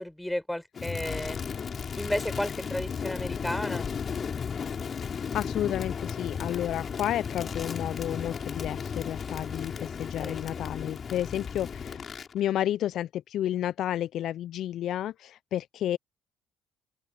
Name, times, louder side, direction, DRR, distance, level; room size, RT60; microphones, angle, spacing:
voice 1, 0.0-1.4 1.9-3.9 10.2-10.4, left 1 dB, 5° left, 6.0 m, -33 dB
Crackle, 0.7-12.3, left 6 dB, 45° left, 5.9 m, -35 dB
voice 2, 5.1-16.0, left 12 dB, 65° left, 0.5 m, -31 dB
hypercardioid pair, 55°, 0 cm